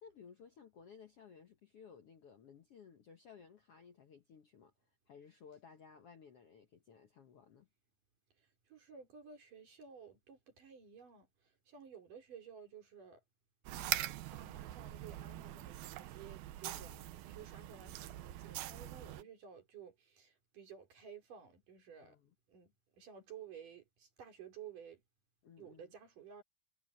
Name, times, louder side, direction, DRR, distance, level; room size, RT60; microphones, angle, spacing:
voice 1, 0.0-4.7 5.1-7.7 16.7-17.1 18.8-19.3 22.0-22.3 25.4-25.9, left 6 dB, 75° left, 1.3 m, -58 dB
voice 2, 8.4-13.2 13.7-14.0 14.3-22.2 22.5-25.0 25.6-26.4, right 7 dB, 55° right, 5.6 m, -54 dB
sound 1, 13.7-19.2, right 14 dB, 75° right, 2.5 m, -43 dB
omnidirectional pair, 4.6 m